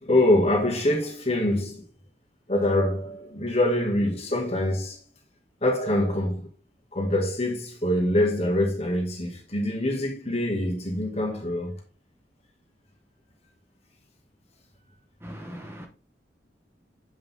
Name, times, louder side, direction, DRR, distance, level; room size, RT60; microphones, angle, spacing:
voice 1, 0.0-1.8 2.5-5.0 5.6-6.4 6.9-11.8, left 1 dB, 35° left, 2.1 m, -24 dB
voice 2, 15.2-15.9, equal, 15° right, 0.8 m, -39 dB
8.0 x 5.3 x 3.7 m
head